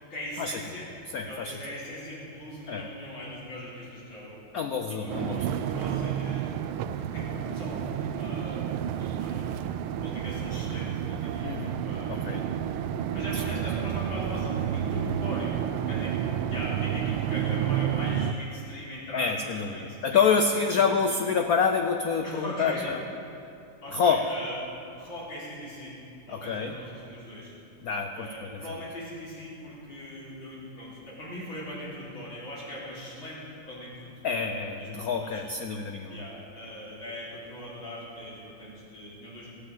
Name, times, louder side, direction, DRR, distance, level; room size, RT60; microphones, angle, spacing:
voice 1, 0.1-0.9 1.2-4.4 4.9-6.6 7.1-11.6 11.8-12.4 13.1-15.6 15.9-16.2 16.5-20.3 20.7-20.9 22.2-22.9 23.8-24.6 24.9-26.0 26.3-27.5 28.1-35.4 36.1-39.5, equal, 65° left, -7 dB, 4.6 m, -40 dB
voice 2, 1.1-1.6 2.7-2.9 4.5-5.4 11.4-11.8 12.1-12.5 13.3-13.4 19.1-23.0 23.9-24.2 26.3-26.7 27.8-28.3 28.5-28.6 34.2-36.2, left 5 dB, 80° left, 5 dB, 0.8 m, -27 dB
sound 1, 5.1-18.3, right 9 dB, 85° right, 1.5 m, -30 dB
16.0 x 8.3 x 7.6 m, 2.7 s
omnidirectional pair, 2.4 m